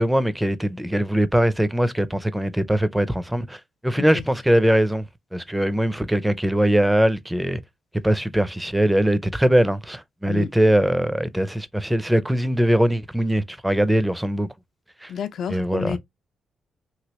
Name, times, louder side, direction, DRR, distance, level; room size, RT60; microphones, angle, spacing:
voice 1, 0.0-5.1 5.3-7.6 7.9-14.5 15.0-15.1 15.5-16.0, right 1 dB, 5° right, 0.5 m, -21 dB
voice 2, 15.1-16.0, left 7 dB, 65° left, 0.4 m, -30 dB
3.0 x 2.8 x 2.9 m
cardioid pair, 70°, 0 cm